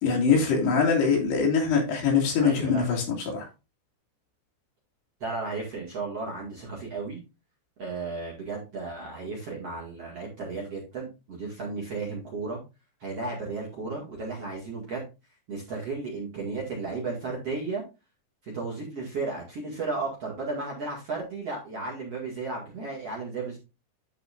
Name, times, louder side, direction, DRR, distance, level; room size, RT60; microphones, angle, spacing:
voice 1, 0.0-3.0 3.3-3.5, left 5 dB, 65° left, 4.2 m, -23 dB
voice 2, 2.4-2.9 5.2-7.2 7.8-12.6 13.0-15.0 15.5-17.8 18.4-23.6, right 3 dB, 45° right, 2.4 m, -34 dB
13.0 x 5.1 x 2.5 m
omnidirectional pair, 5.2 m